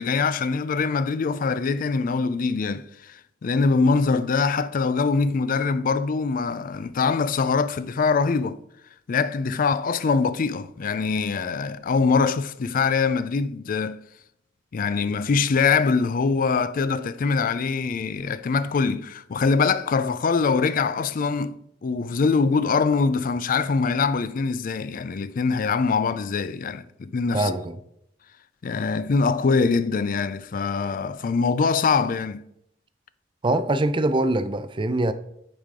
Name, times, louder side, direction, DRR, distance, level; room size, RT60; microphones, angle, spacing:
voice 1, 0.0-8.6 9.1-14.0 14.7-27.5 28.6-32.4, left 4 dB, 50° left, 0.4 m, -23 dB
voice 2, 27.3-27.8 33.4-35.1, right 2 dB, 25° right, 0.5 m, -23 dB
8.8 x 4.9 x 3.7 m
head